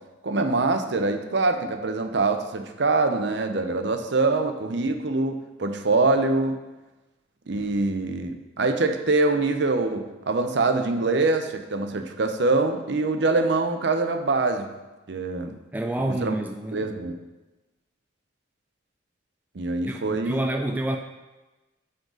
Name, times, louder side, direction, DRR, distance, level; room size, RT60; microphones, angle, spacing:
voice 1, 0.2-6.6 7.5-14.7 15.1-15.6 16.1-16.3 16.7-17.2 19.5-20.5, right 3 dB, 65° right, 6 dB, 0.6 m, -24 dB
voice 2, 15.7-16.8 19.9-21.0, right 1 dB, 10° right, 3 dB, 0.3 m, -28 dB
9.5 x 4.0 x 3.9 m, 1.1 s
head